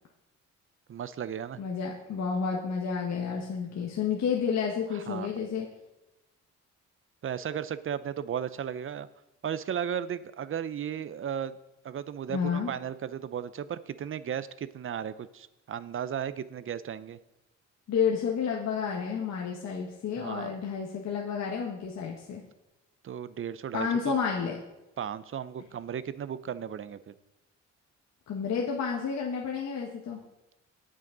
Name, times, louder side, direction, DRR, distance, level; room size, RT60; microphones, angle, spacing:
voice 1, 0.9-1.6 3.8-3.9 4.9-5.3 7.2-9.1 9.4-11.6 11.8-17.2 20.2-20.6 23.0-24.2 25.0-27.1, right 8 dB, 45° right, 15 dB, 0.7 m, -35 dB
voice 2, 1.6-5.7 12.3-12.7 17.9-22.4 23.7-24.6 28.3-30.2, left 6 dB, 60° left, -1 dB, 1.6 m, -30 dB
17.5 x 6.4 x 4.0 m, 0.96 s
cardioid pair, 90°, 30 cm